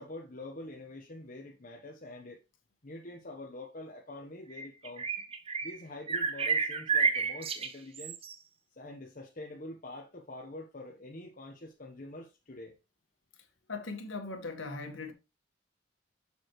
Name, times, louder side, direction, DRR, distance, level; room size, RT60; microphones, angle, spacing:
voice 1, 0.0-2.4 2.8-5.1 5.6-8.2 8.8-12.8, left 2 dB, 45° left, 1.1 m, -45 dB
sound 1, 4.5-5.8 6.1-8.3, right 5 dB, 30° right, 0.7 m, -31 dB
voice 2, 13.7-15.1, left 3 dB, 90° left, 1.6 m, -39 dB
7.1 x 6.7 x 3.2 m
head